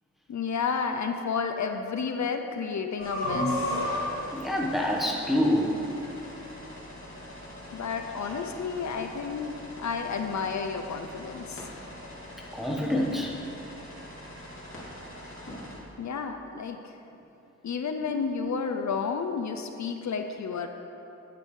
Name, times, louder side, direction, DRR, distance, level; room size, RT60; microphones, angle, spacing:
voice 1, 0.3-3.8 7.7-11.7 16.0-17.0 17.6-20.7, left 5 dB, 70° left, 6 dB, 0.7 m, -31 dB
sound 1, 3.0-15.7, left 1 dB, 45° left, 2.7 m, -37 dB
voice 2, 4.3-5.8 8.8-8.9 12.5-13.4 18.0-18.4, left 1 dB, ahead, -2 dB, 1.2 m, -27 dB
10.5 x 9.7 x 4.8 m, 2.7 s
wide cardioid pair, 175°, 29 cm